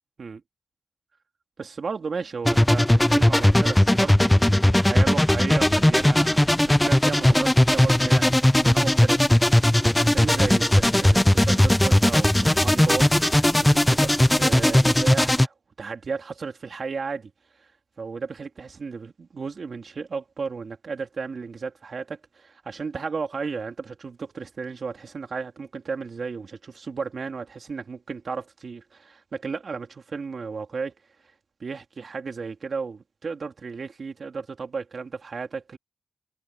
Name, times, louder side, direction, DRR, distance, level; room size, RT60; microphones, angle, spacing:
voice 1, 1.6-17.3 18.0-30.9 31.6-35.8, right 5 dB, 55° right, 3.3 m, -34 dB
sound 1, 2.5-15.5, left 1 dB, 10° left, 0.5 m, -18 dB
cardioid pair, 85°, 0 cm